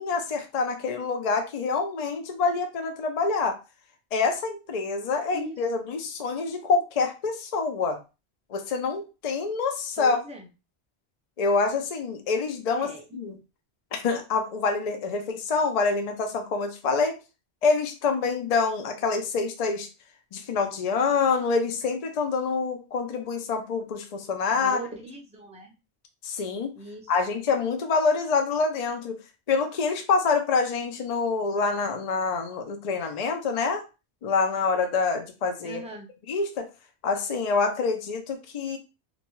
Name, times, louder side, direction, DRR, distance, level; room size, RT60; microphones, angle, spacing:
voice 1, 0.0-3.6 4.1-8.0 8.5-10.2 11.4-13.4 13.9-17.2 17.6-19.9 20.3-24.8 26.2-26.7 27.1-29.2 29.5-33.8 34.2-35.8 36.3-36.7 37.0-38.8, left 4 dB, 50° left, 5 dB, 0.5 m, -26 dB
voice 2, 5.3-5.7 10.0-10.5 12.7-13.2 24.6-25.7 26.7-27.1 35.6-36.1, right 2 dB, 10° right, 2 dB, 0.5 m, -40 dB
2.6 x 2.2 x 3.0 m, 0.30 s
omnidirectional pair, 1.1 m